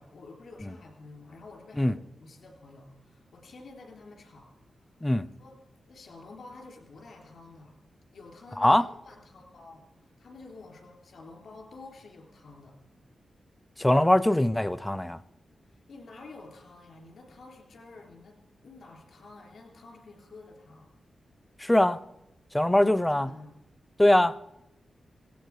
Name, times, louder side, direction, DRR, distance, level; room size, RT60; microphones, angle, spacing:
voice 1, 0.0-5.1 5.4-5.6 5.9-7.8 8.1-12.8 15.6-18.4 18.6-20.9 22.8-23.5, left 3 dB, 65° left, 3.4 m, -49 dB
voice 2, 13.8-15.2 21.6-22.0 22.5-23.3 24.0-24.3, left 1 dB, 10° left, 0.5 m, -22 dB
17.5 x 17.0 x 4.8 m
wide cardioid pair, 155°, 0 cm